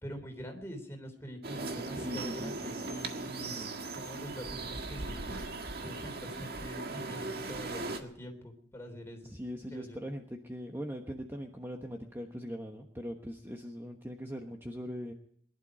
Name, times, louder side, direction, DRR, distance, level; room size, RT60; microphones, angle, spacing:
voice 1, 0.0-3.6 4.0-5.4 5.8-9.3 9.7-10.0, equal, 15° left, 3 dB, 3.4 m, -45 dB
sound 1, 1.4-8.0, right 3 dB, 60° right, 1.8 m, -38 dB
voice 2, 2.0-2.8 3.5-3.7 9.3-15.1, equal, 15° right, 3 dB, 1.2 m, -41 dB
22.5 x 11.5 x 5.0 m, 0.65 s
head